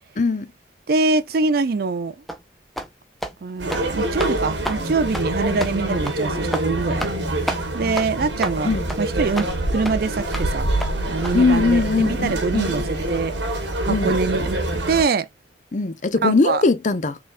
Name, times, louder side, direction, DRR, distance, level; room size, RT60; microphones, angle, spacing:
voice 1, 0.2-0.5 8.6-8.9 11.3-12.7 13.9-14.1 15.7-17.2, left 3 dB, 40° left, 0.6 m, -20 dB
voice 2, 0.9-2.2 3.4-7.1 7.7-8.7 9.0-10.7 11.1-14.6 14.9-15.3 16.2-16.6, right 4 dB, 55° right, 0.4 m, -24 dB
sound 1, 2.3-2.4 2.8-2.9 3.2-3.4 3.6-3.9 4.2-4.3 4.6-4.8 5.1-5.3 5.6-5.7 6.0-6.2 6.5-6.7 7.0-7.2 7.5-7.6 8.0-8.1 8.4-8.6 8.9-9.0 9.4-9.5 9.8-10.0 10.3-10.5 10.8-10.9 11.2-11.3, equal, ahead, 0.5 m, -29 dB
sound 2, 3.6-15.0, right 1 dB, 75° right, 1.4 m, -26 dB
4.1 x 3.9 x 2.5 m
head